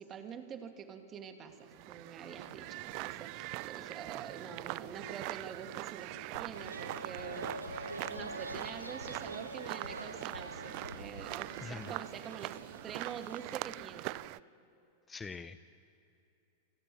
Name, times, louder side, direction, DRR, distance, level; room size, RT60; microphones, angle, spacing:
voice 1, 0.0-7.5 8.1-12.6 12.8-14.1, right 7 dB, 30° right, 6 dB, 2.6 m, -46 dB
sound 1, 1.6-14.4, right 20 dB, 45° right, 0.4 m, -43 dB
Drum kit, 6.3-11.7, left 3 dB, 75° left, 1.2 m, -54 dB
sound 2, 6.5-13.5, right 2 dB, 80° right, 1.6 m, -45 dB
voice 2, 11.6-12.0 15.1-15.6, left 5 dB, 15° left, 13 dB, 0.7 m, -44 dB
27.5 x 15.0 x 9.6 m, 2.9 s
figure-of-eight pair, 90°, 0 cm